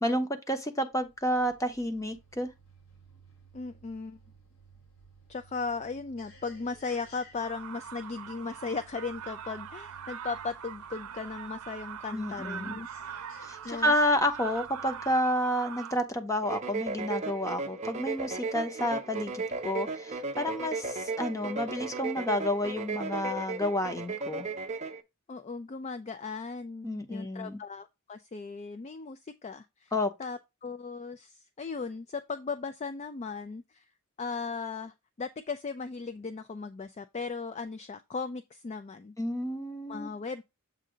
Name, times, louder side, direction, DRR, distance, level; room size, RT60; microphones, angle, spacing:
voice 1, 0.0-2.5 12.1-12.8 13.4-24.5 26.8-27.6 29.9-30.1 39.2-40.1, equal, 15° left, 0.9 m, -30 dB
sound 1, 0.9-15.2, right 2 dB, 70° left, 2.3 m, -57 dB
voice 2, 3.5-4.2 5.3-12.9 13.6-13.9 25.3-29.9 30.2-33.8 34.2-39.1 39.9-40.4, left 4 dB, 30° left, 0.3 m, -37 dB
sound 2, 7.4-16.0, right 8 dB, 85° right, 0.6 m, -42 dB
sound 3, 16.4-25.0, right 3 dB, 30° right, 0.7 m, -35 dB
7.4 x 2.7 x 5.0 m
head